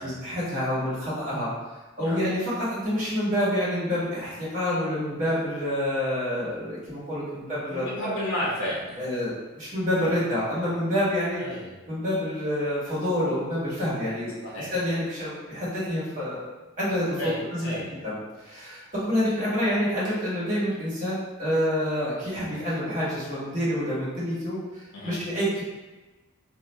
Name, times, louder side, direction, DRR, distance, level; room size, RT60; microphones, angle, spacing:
voice 1, 0.0-1.5 2.0-8.2 9.0-11.4 11.9-16.4 16.8-17.7 18.0-25.6, equal, 35° right, -9 dB, 1.2 m, -28 dB
voice 2, 7.3-9.0 11.4-11.7 14.4-14.7 17.2-17.9 24.9-25.2, equal, 75° left, -5 dB, 0.7 m, -32 dB
2.6 x 2.1 x 4.0 m, 1.2 s
head